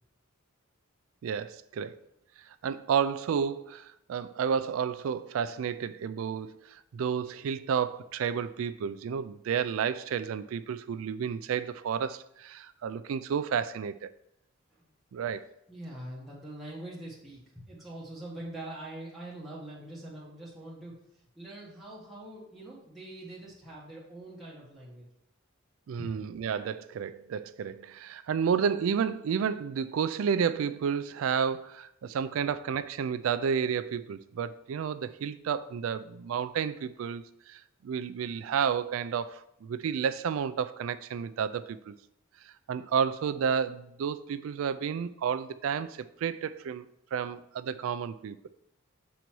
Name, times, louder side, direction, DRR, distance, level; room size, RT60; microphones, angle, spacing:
voice 1, 1.2-2.0 2.5-14.1 15.1-15.4 25.9-41.9 42.7-48.5, right 7 dB, 80° right, 0.3 m, -31 dB
voice 2, 15.7-20.9 21.4-25.0, right 1 dB, ahead, 1.4 m, -43 dB
6.2 x 4.0 x 4.5 m
head